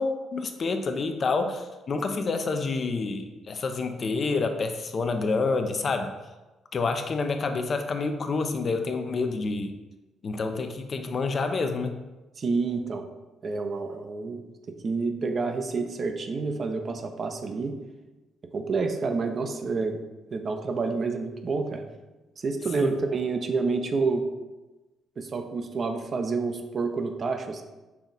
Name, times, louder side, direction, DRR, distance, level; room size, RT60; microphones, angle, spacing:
voice 1, 0.0-6.2 6.7-9.7 10.2-11.9 22.8-23.0, left 4 dB, 45° left, 7 dB, 0.5 m, -28 dB
voice 2, 12.4-13.0 13.4-17.8 18.5-20.0 20.3-21.8 22.4-24.3 25.2-27.6, right 4 dB, 45° right, 6 dB, 0.5 m, -28 dB
5.6 x 2.3 x 3.9 m, 1.1 s
cardioid pair, 90°, 0 cm